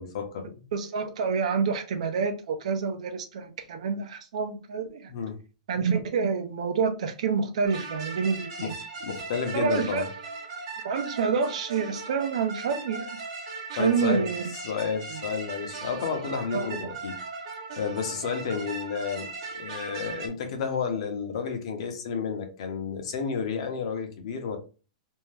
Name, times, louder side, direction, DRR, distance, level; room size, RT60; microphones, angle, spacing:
voice 1, 0.0-0.5 5.1-5.4 8.6-10.1 13.8-17.2 17.8-24.6, left 6 dB, 50° left, 0.7 m, -31 dB
voice 2, 0.7-5.1 5.7-8.7 9.5-10.0 10.8-13.2 13.8-14.4 15.1-15.2 16.3-16.7, right 5 dB, 60° right, 0.6 m, -28 dB
sound 1, 7.6-20.3, right 4 dB, 45° right, 0.9 m, -38 dB
2.6 x 2.2 x 3.2 m
supercardioid pair, 175°, 4 cm